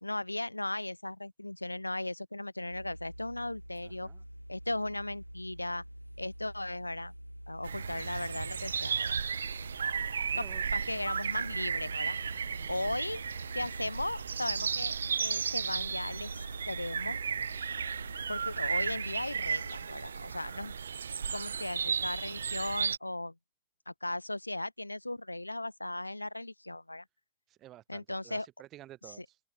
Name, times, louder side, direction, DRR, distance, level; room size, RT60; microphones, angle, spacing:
voice 1, 0.0-4.1 4.5-5.8 6.2-7.1 7.5-9.2 10.3-10.4 10.7-12.2 12.7-13.2 13.5-17.2 18.3-20.7 21.3-23.3 23.9-27.0 27.9-28.5, left 1 dB, 85° left, 0.3 m, -37 dB
sound 1, 2.7-19.7, equal, 90° right, 1.0 m, -47 dB
voice 2, 3.8-4.2 10.3-10.6 20.5-20.8 27.5-29.4, right 14 dB, 35° right, 3.2 m, -53 dB
sound 2, 7.6-23.0, right 6 dB, 70° right, 0.4 m, -34 dB
open air
figure-of-eight pair, 90°, 0 cm